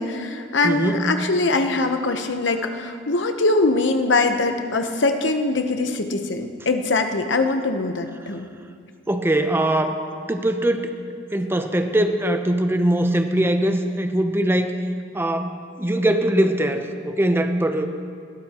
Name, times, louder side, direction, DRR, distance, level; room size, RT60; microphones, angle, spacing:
voice 1, 0.0-8.5, left 3 dB, 70° left, 6 dB, 0.9 m, -22 dB
voice 2, 0.6-1.1 9.1-10.0 10.3-10.9 11.3-14.7 15.1-17.9, right 1 dB, 10° right, 7 dB, 0.7 m, -21 dB
20.5 x 13.0 x 2.9 m, 2.3 s
head